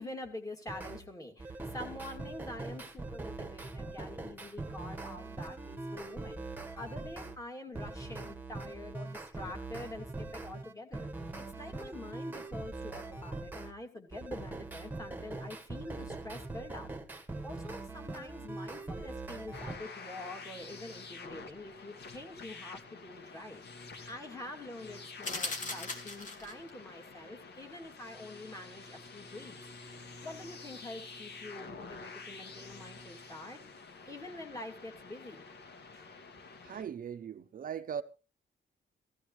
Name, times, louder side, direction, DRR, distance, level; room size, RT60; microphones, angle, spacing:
voice 1, 0.0-11.1 11.6-16.9 17.4-29.6 30.2-33.6 34.1-35.4 35.9-36.1, left 1 dB, 15° left, 2.8 m, -46 dB
sound 1, 0.7-1.0 1.4-7.4 7.7-13.7 14.1-19.8, right 2 dB, 10° right, 1.4 m, -42 dB
sound 2, 19.5-36.8, left 4 dB, 60° left, 2.4 m, -49 dB
sound 3, 25.2-26.7, left 3 dB, 40° left, 2.8 m, -38 dB
voice 2, 36.6-38.0, right 8 dB, 50° right, 0.7 m, -39 dB
16.0 x 14.5 x 3.2 m
wide cardioid pair, 165°, 19 cm